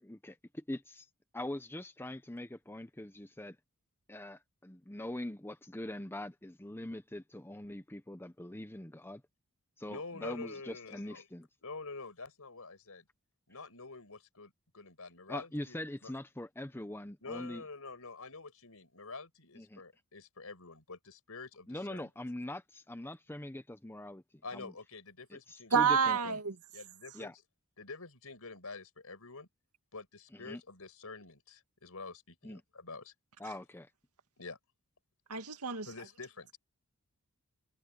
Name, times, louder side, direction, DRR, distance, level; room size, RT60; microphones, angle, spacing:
voice 1, 0.0-1.1 1.3-3.6 4.1-9.2 9.8-11.5 15.3-17.6 19.6-19.8 21.7-24.2 24.5-24.7 25.3-26.4 27.1-27.3 30.3-30.6 32.4-32.6 33.4-33.9, left 1 dB, 10° left, 0.9 m, -42 dB
voice 2, 9.9-11.3 11.6-13.0 13.5-16.1 17.2-22.1 24.4-26.3 26.7-27.3 27.8-29.5 29.9-33.1 34.4-34.6 35.8-36.6, left 3 dB, 75° left, 5.8 m, -47 dB
voice 3, 25.7-26.5 35.3-35.9, right 6 dB, 90° right, 2.1 m, -28 dB
head